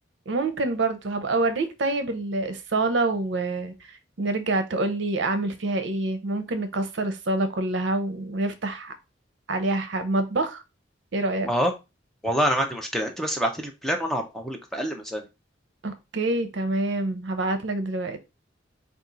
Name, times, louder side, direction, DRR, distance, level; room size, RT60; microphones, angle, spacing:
voice 1, 0.3-3.7 4.2-8.9 9.5-10.6 11.1-11.5 15.8-18.2, right 2 dB, 70° right, 0.6 m, -26 dB
voice 2, 12.2-15.3, equal, ahead, 0.5 m, -26 dB
4.2 x 2.4 x 3.8 m
head